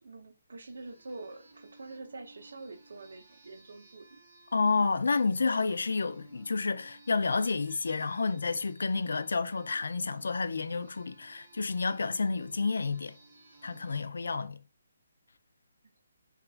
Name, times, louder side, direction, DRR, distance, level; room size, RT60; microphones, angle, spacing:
voice 1, 0.0-4.2 14.0-14.3, right 3 dB, 75° right, 0.7 m, -46 dB
sound 1, 0.7-14.0, right 2 dB, 45° right, 1.1 m, -58 dB
voice 2, 4.5-13.2 13.6-14.6, left 4 dB, 85° left, 0.3 m, -30 dB
2.9 x 2.4 x 2.4 m
hypercardioid pair, 175°, 0 cm